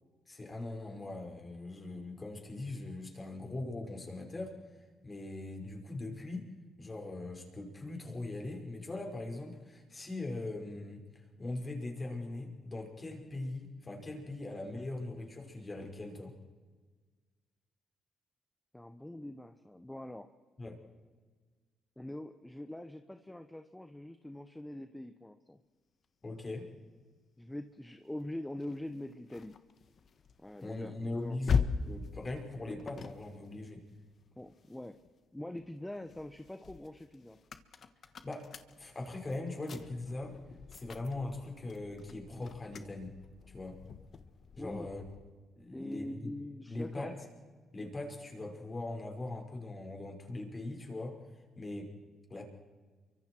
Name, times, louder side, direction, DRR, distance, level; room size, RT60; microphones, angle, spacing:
voice 1, 0.3-4.6 5.0-6.5 6.8-16.3 20.6-20.8 26.2-26.7 30.6-33.8 38.2-38.5 38.8-40.4 40.7-43.2 43.5-43.8 44.6-45.0 45.6-46.3 46.7-47.2 47.7-51.2 51.6-51.9 52.3-52.5, left 2 dB, 25° left, 2 dB, 5.1 m, -40 dB
voice 2, 18.7-20.3 22.0-25.6 27.4-29.6 30.4-31.4 34.4-35.0 35.3-37.4 44.6-44.9 45.7-47.1, left 1 dB, 10° left, 8 dB, 1.0 m, -43 dB
sound 1, 28.6-35.1 35.6-45.4, left 6 dB, 50° left, 1.4 m, -41 dB
28.5 x 24.5 x 4.6 m, 1.4 s
cardioid pair, 90°, 0 cm